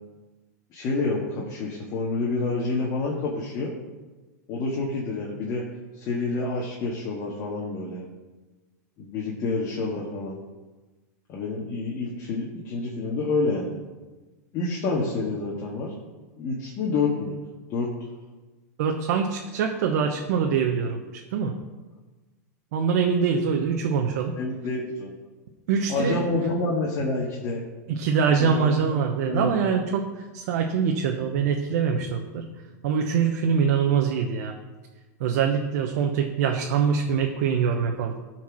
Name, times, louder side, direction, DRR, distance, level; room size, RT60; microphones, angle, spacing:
voice 1, 0.7-3.7 4.5-5.6 6.0-8.0 9.0-10.4 11.3-13.8 14.5-15.9 16.4-17.3 17.7-17.9 24.4-25.1 25.9-27.6 28.4-28.9 29.3-29.6, left 3 dB, 40° left, -3 dB, 1.8 m, -28 dB
voice 2, 18.8-21.5 22.7-24.3 25.7-26.2 27.9-32.4 32.8-34.5 35.2-38.2, right 6 dB, 65° right, 2 dB, 1.0 m, -24 dB
12.5 x 4.6 x 6.2 m, 1.2 s
hypercardioid pair, 130°, 9 cm